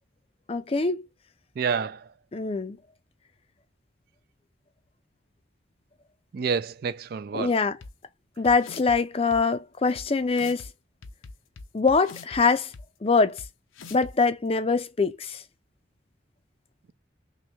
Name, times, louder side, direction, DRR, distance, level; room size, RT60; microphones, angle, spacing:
voice 1, 0.5-1.1 2.3-2.8 7.3-7.8 8.4-10.6 11.7-12.7 13.0-13.4 13.9-15.4, left 4 dB, 30° left, 0.4 m, -23 dB
voice 2, 1.6-2.0 6.3-7.6, right 5 dB, 50° right, 0.3 m, -28 dB
sound 1, 7.8-7.9 8.4-9.0 9.3-9.4 9.9-10.0 10.3-10.7 11.0-12.4 12.7-12.8 13.4-13.5 13.7-14.1, left 4 dB, 90° left, 0.6 m, -42 dB
3.1 x 3.0 x 3.3 m
head